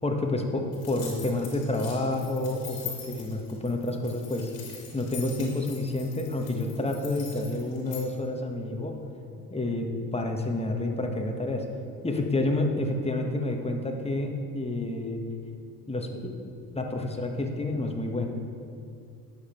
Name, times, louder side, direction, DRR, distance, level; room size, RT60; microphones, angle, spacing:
voice 1, 0.0-4.5 4.9-9.1 9.5-11.6 12.0-15.2 15.9-16.3 16.7-18.3, left 2 dB, 15° left, 2 dB, 1.6 m, -29 dB
sound 1, 0.7-8.0, left 7 dB, 80° left, 2.8 m, -43 dB
12.0 x 8.1 x 4.5 m, 2.4 s
hypercardioid pair, 55°, 47 cm